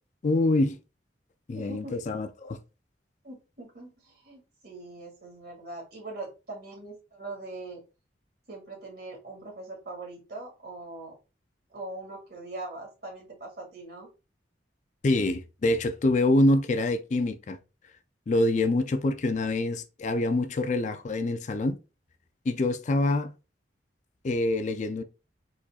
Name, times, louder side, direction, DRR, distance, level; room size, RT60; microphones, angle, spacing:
voice 1, 0.2-0.8 1.5-2.6 15.0-17.6 18.3-21.8 22.5-23.3 24.2-25.0, left 2 dB, 45° left, 0.4 m, -25 dB
voice 2, 1.5-2.0 3.2-7.8 8.5-11.1 11.7-14.1, right 2 dB, 60° right, 2.2 m, -41 dB
4.7 x 4.2 x 2.4 m
head